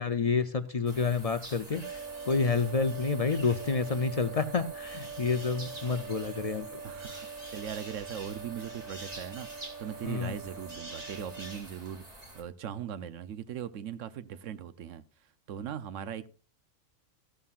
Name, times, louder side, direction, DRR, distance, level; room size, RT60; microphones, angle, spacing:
voice 1, 0.0-1.8 2.3-6.7 10.0-10.3, left 4 dB, 50° left, 0.4 m, -29 dB
sound 1, 0.9-12.4, right 1 dB, 30° right, 2.4 m, -47 dB
sound 2, 1.8-11.6, right 6 dB, 70° right, 1.7 m, -43 dB
voice 2, 6.8-16.3, right 9 dB, 85° right, 1.0 m, -40 dB
14.0 x 11.0 x 2.4 m
omnidirectional pair, 1.3 m